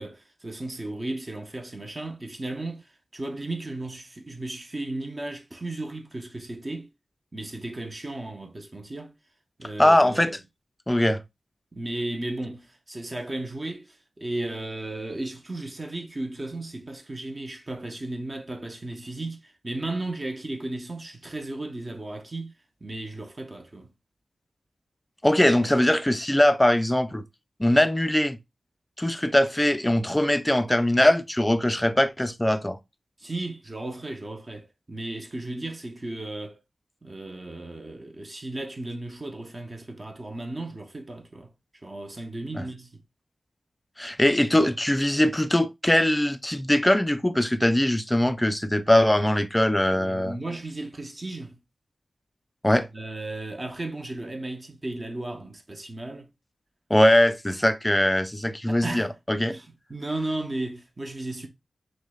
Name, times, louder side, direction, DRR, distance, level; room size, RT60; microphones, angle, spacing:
voice 1, 0.0-6.9 7.3-9.1 9.6-10.4 11.7-22.5 22.8-23.9 33.2-36.6 37.0-41.5 41.8-43.0 49.6-51.6 52.9-56.3 58.7-61.5, right 2 dB, 30° right, 0.6 m, -35 dB
voice 2, 9.8-10.4 10.9-11.2 25.2-27.3 27.6-28.4 29.0-32.8 42.6-42.7 44.0-50.3 52.6-52.9 56.9-59.5, left 1 dB, 10° left, 0.3 m, -21 dB
6.1 x 2.1 x 2.2 m
wide cardioid pair, 90°, 0 cm